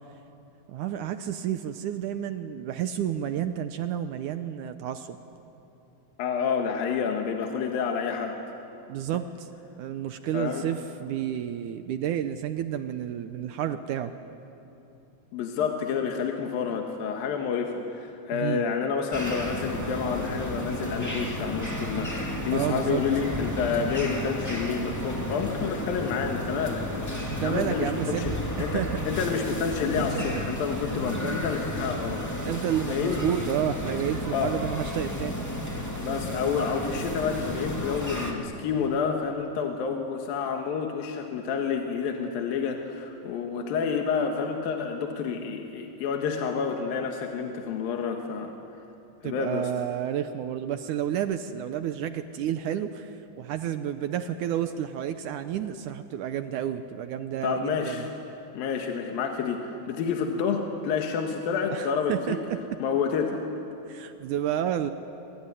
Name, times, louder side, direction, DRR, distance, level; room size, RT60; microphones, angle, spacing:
voice 1, 0.7-5.2 8.9-9.5 9.8-14.1 18.3-18.6 22.5-23.0 27.2-28.9 30.0-30.4 30.8-31.5 32.4-35.4 49.2-58.1 61.7-62.6 63.9-64.9, right 10 dB, 75° right, 9 dB, 1.9 m, -31 dB
voice 2, 6.2-8.4 10.3-10.7 15.3-22.1 22.5-26.9 27.4-28.3 28.6-32.2 32.9-33.2 34.3-34.5 36.0-48.5 49.2-49.7 57.4-58.1 58.5-62.4 62.8-63.4, left 6 dB, 70° left, 3 dB, 3.2 m, -29 dB
sound 1, 19.1-38.3, left 1 dB, 5° left, 1.8 m, -32 dB
24.5 x 24.5 x 9.8 m, 2.9 s
omnidirectional pair, 4.4 m